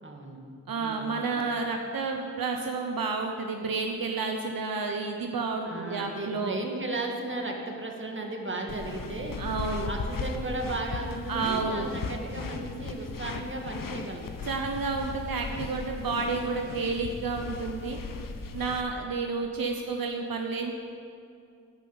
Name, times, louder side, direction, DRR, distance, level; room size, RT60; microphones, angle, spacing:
voice 1, 0.0-0.4 0.8-1.2 5.6-9.4 9.8-14.3, right 2 dB, 35° right, 1 dB, 1.9 m, -35 dB
voice 2, 0.7-6.6 9.4-9.9 11.3-11.9 14.5-18.0 18.5-20.7, right 4 dB, 80° right, 3 dB, 0.9 m, -30 dB
sound 1, 8.7-18.8, left 4 dB, 70° left, 0.8 m, -37 dB
11.0 x 5.7 x 8.6 m, 2.3 s
cardioid pair, 45°, 34 cm